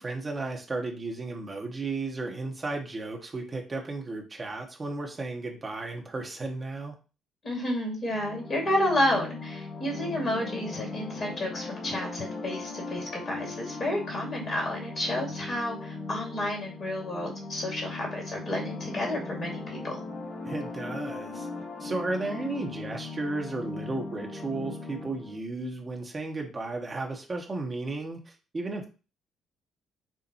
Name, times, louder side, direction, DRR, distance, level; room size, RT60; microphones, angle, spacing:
voice 1, 0.0-6.9 20.4-21.5 21.8-28.9, right 3 dB, 30° right, 1 dB, 1.2 m, -34 dB
voice 2, 7.4-20.0, left 1 dB, 45° left, 0 dB, 2.4 m, -31 dB
sound 1, 8.0-25.4, left 3 dB, 25° left, 1.3 m, -38 dB
7.0 x 2.5 x 3.0 m, 0.34 s
figure-of-eight pair, 45°, 0 cm